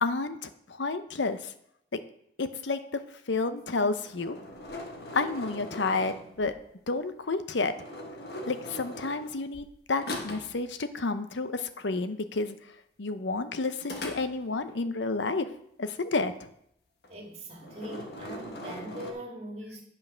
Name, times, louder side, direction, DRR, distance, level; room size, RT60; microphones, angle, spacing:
voice 1, 0.0-1.5 2.4-3.0 3.3-4.4 5.1-6.5 6.9-7.7 8.4-12.6 13.0-15.5 15.8-16.5, left 3 dB, 80° left, 10 dB, 0.8 m, -30 dB
sound 1, 3.8-6.6 7.6-9.7 10.0-10.6 13.8-14.7 17.0-17.3 17.6-19.1, left 1 dB, 60° left, 1.3 m, -40 dB
voice 2, 17.1-19.8, right 1 dB, 35° right, 0 dB, 2.2 m, -41 dB
9.7 x 5.6 x 5.7 m, 0.72 s
head